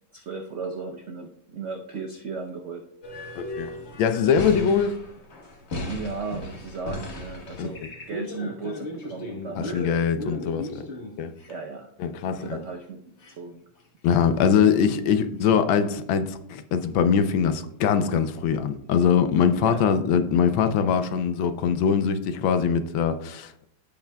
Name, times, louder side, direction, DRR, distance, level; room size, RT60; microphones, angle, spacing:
voice 1, 0.1-3.2 5.8-9.9 11.5-11.9 12.4-13.0 13.4-13.6 19.6-19.8, right 4 dB, 80° right, 0.6 m, -35 dB
sound 1, 3.0-11.5 12.4-12.5 12.8-12.9 13.2-13.3 13.8-13.9 15.4-15.5, left 2 dB, 40° left, 1.1 m, -36 dB
voice 2, 3.4-3.7 4.0-5.0 7.6-7.7 9.6-10.8 11.2-11.3 12.0-12.6 14.0-23.7, left 7 dB, 80° left, 1.4 m, -22 dB
15.5 x 5.8 x 2.2 m
omnidirectional pair, 2.2 m